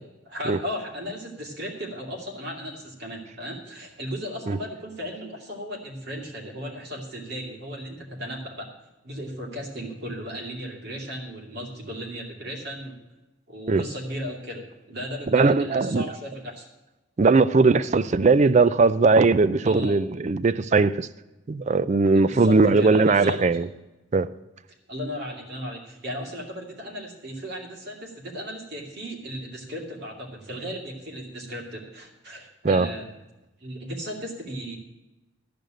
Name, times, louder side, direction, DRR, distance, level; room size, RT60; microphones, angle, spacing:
voice 1, 0.3-8.7 9.0-13.0 13.5-16.7 19.6-20.0 22.1-23.4 24.9-33.0 33.6-34.8, equal, 55° right, 2.5 m, -36 dB
voice 2, 15.3-16.0 17.2-21.1 21.5-23.7 24.1-24.3 32.6-32.9, right 3 dB, 35° right, 0.4 m, -19 dB
13.0 x 5.2 x 9.0 m
head